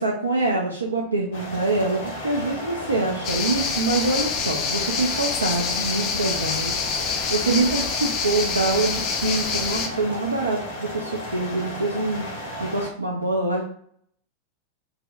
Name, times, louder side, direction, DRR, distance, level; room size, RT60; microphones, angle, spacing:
voice 1, 0.0-6.8 7.1-12.2 12.6-13.6, right 2 dB, 80° right, -2 dB, 0.3 m, -25 dB
sound 1, 1.3-12.9, left 1 dB, 55° left, 0.7 m, -35 dB
sound 2, 3.2-9.9, left 5 dB, 35° left, 0.3 m, -26 dB
2.6 x 2.0 x 2.4 m, 0.63 s
figure-of-eight pair, 90°, 0 cm